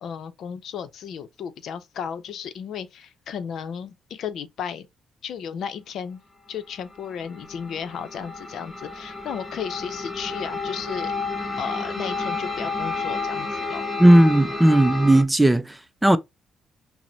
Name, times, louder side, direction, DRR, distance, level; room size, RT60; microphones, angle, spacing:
voice 1, 0.0-4.9 5.2-6.2 6.5-11.1 11.6-13.8, left 7 dB, 70° left, 0.6 m, -34 dB
sound 1, 6.7-15.2, left 3 dB, 15° left, 1.1 m, -31 dB
voice 2, 14.0-15.7 16.0-16.2, right 1 dB, 10° right, 0.4 m, -15 dB
5.7 x 2.1 x 2.7 m
cardioid pair, 90°, 0 cm